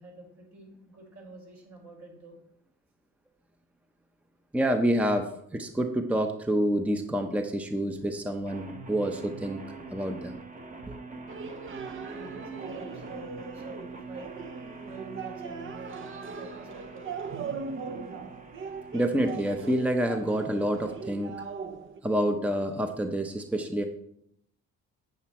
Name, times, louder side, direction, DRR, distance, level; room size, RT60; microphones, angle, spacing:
voice 1, 0.0-2.3 11.9-14.3 14.8-17.1, right 2 dB, 65° right, -1 dB, 4.2 m, -47 dB
voice 2, 4.5-9.6 9.9-10.4 10.9-11.0 18.9-21.4 22.0-23.8, right 1 dB, 5° right, 6 dB, 0.7 m, -28 dB
sound 1, 8.5-21.4, right 3 dB, 25° right, 1.2 m, -45 dB
sound 2, 11.3-22.0, right 5 dB, 40° right, 0.8 m, -40 dB
8.3 x 7.9 x 4.3 m, 0.74 s
cardioid pair, 90°, 30 cm